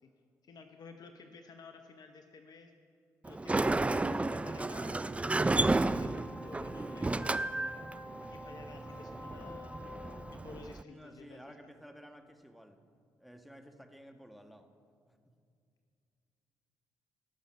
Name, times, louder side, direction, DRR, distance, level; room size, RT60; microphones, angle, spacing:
voice 1, 0.4-2.7 3.2-7.8 8.2-9.7 10.3-11.7, left 4 dB, 55° left, 6 dB, 0.8 m, -53 dB
Sliding door, 3.2-10.8, right 2 dB, 15° right, 0.4 m, -32 dB
Wind instrument woodwind instrument, 5.4-10.5, left 1 dB, 25° left, 3.3 m, -49 dB
voice 2, 10.8-14.7 15.1-15.4, equal, ahead, 5 dB, 1.4 m, -54 dB
18.0 x 6.5 x 5.3 m, 2.3 s
hypercardioid pair, 50°, 8 cm